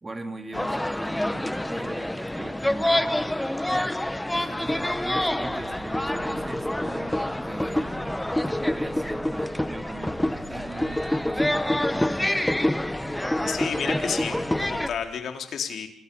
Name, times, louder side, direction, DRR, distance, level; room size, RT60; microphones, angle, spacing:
voice 1, 0.0-4.0 4.3-8.2 8.5-12.4, right 2 dB, 25° right, 6 dB, 3.5 m, -40 dB
sound 1, 0.5-14.9, left 1 dB, 5° left, 1.0 m, -27 dB
sound 2, 4.5-15.1, right 4 dB, 70° right, 5.9 m, -47 dB
voice 2, 13.5-15.9, left 7 dB, 65° left, 5 dB, 3.9 m, -31 dB
28.0 x 22.5 x 5.6 m, 0.63 s
cardioid pair, 75°, 0 cm